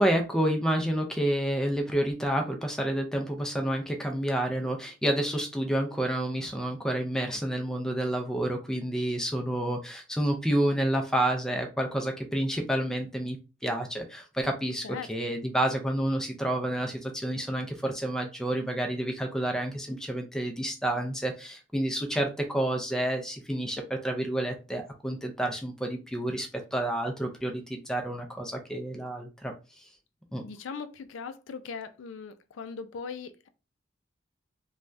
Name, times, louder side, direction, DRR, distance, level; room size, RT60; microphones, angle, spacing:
voice 1, 0.0-13.4 13.6-29.5 30.3-30.4, right 1 dB, 5° left, 0.4 m, -29 dB
voice 2, 30.4-33.5, left 5 dB, 80° left, 0.4 m, -39 dB
3.2 x 2.3 x 2.5 m
head